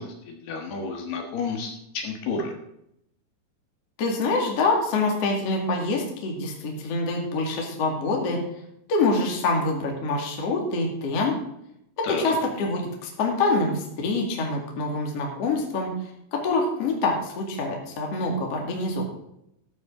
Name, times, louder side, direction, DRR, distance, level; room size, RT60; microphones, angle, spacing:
voice 1, 0.0-2.5 12.0-12.3, left 4 dB, 65° left, 3 dB, 3.2 m, -31 dB
voice 2, 4.0-8.4 8.9-11.3 12.0-15.9 16.3-19.1, left 3 dB, 45° left, 0 dB, 2.4 m, -25 dB
13.5 x 11.5 x 3.8 m, 0.78 s
omnidirectional pair, 5.4 m